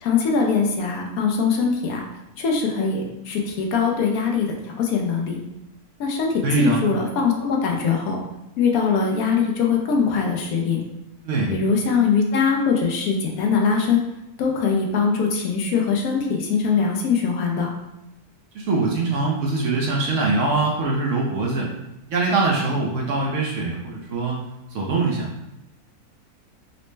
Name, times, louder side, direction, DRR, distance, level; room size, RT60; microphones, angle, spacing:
voice 1, 0.0-2.0 2.4-5.4 6.0-8.2 8.6-10.8 11.5-14.0 14.4-17.7, left 5 dB, 75° left, 1 dB, 1.0 m, -22 dB
voice 2, 6.4-6.8 11.2-11.5 18.5-21.7 22.1-24.4 24.7-25.3, right 3 dB, 65° right, -2 dB, 0.8 m, -23 dB
4.0 x 2.1 x 3.1 m, 0.92 s
omnidirectional pair, 1.6 m